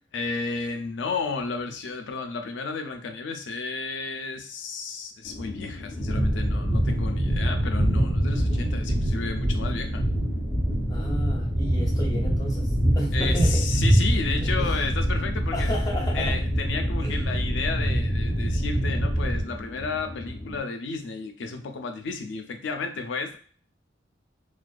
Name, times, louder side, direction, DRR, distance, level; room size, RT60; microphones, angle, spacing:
voice 1, 0.1-10.0 13.1-15.7 16.1-23.4, left 4 dB, 80° left, 6 dB, 0.4 m, -32 dB
sound 1, 5.2-20.6, left 1 dB, 10° right, 1.0 m, -37 dB
sound 2, 6.0-19.4, right 1 dB, 65° right, 0.8 m, -25 dB
voice 2, 10.9-13.7 14.4-14.8 15.5-16.4 17.0-17.2, left 1 dB, 20° left, -2 dB, 0.6 m, -33 dB
2.5 x 2.2 x 2.3 m, 0.44 s
head